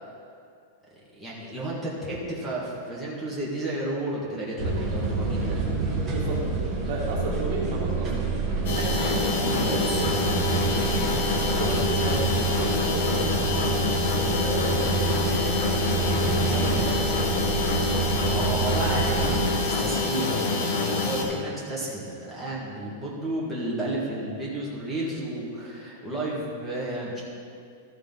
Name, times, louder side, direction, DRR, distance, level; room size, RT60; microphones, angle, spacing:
voice 1, 1.2-5.6 18.3-27.2, right 1 dB, ahead, -8 dB, 1.8 m, -32 dB
sound 1, 4.6-19.6, right 4 dB, 20° right, 2.1 m, -28 dB
voice 2, 6.1-6.4 6.9-8.3 8.6-11.1 11.4-13.8 14.3-17.1, right 2 dB, 50° right, -2 dB, 2.0 m, -33 dB
sound 2, 8.6-21.2, left 3 dB, 60° left, 1.8 m, -26 dB
14.0 x 6.6 x 3.9 m, 2.4 s
supercardioid pair, 160°, 0 cm